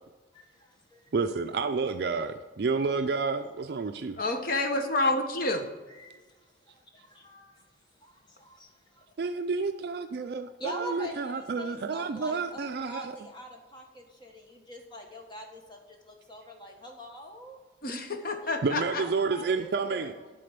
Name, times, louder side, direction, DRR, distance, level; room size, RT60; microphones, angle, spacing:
voice 1, 0.3-1.1 5.9-9.0 10.6-17.6 18.4-20.3, equal, 25° left, 2 dB, 1.3 m, -45 dB
voice 2, 1.1-4.2 9.2-13.1 18.6-20.1, right 4 dB, 55° right, 8 dB, 0.4 m, -30 dB
voice 3, 4.2-5.6 17.8-19.0, left 2 dB, 50° left, 6 dB, 0.9 m, -28 dB
11.0 x 4.3 x 6.7 m, 1.3 s
head